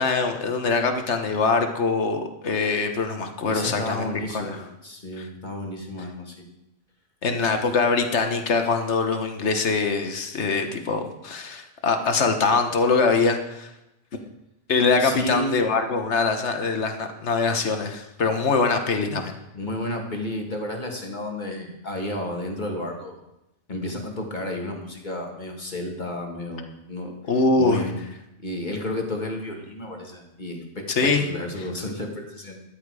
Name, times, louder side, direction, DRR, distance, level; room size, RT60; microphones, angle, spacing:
voice 1, 0.0-4.6 5.2-5.3 7.2-13.7 14.7-19.3 27.3-27.8 30.9-31.3, left 4 dB, 85° left, 6 dB, 1.5 m, -23 dB
voice 2, 3.5-6.4 15.0-15.6 19.5-23.2 23.7-27.2 27.6-28.0 28.4-32.6, left 1 dB, 45° left, 2 dB, 2.1 m, -32 dB
14.0 x 11.0 x 4.9 m, 0.90 s
omnidirectional pair, 1.1 m